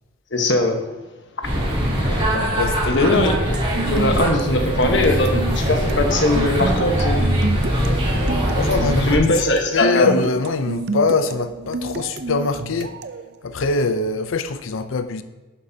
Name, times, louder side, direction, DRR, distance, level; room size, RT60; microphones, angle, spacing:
voice 1, 0.3-0.9 1.4-1.6 2.8-3.4 3.8-7.3 9.0-10.2, left 2 dB, 60° left, 1.2 m, -20 dB
sound 1, 1.4-9.1, equal, 30° right, 3.2 m, -22 dB
voice 2, 2.3-3.1 8.5-13.0 13.4-15.2, left 4 dB, 80° left, 0.6 m, -23 dB
sound 2, 3.0-13.3, right 3 dB, 55° right, 0.5 m, -29 dB
11.5 x 9.0 x 2.8 m
head